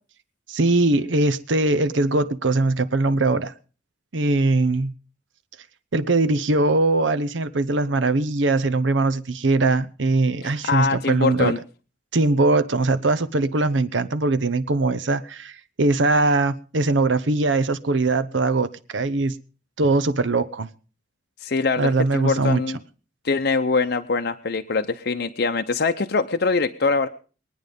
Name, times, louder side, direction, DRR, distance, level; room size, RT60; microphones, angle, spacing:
voice 1, 0.5-3.5 4.1-4.9 5.9-11.5 12.1-19.3 19.8-20.7 21.8-22.6, right 2 dB, 80° right, 0.8 m, -21 dB
voice 2, 10.4-11.6 21.4-22.8 23.2-27.1, left 4 dB, 60° left, 0.7 m, -23 dB
22.0 x 9.5 x 5.2 m
head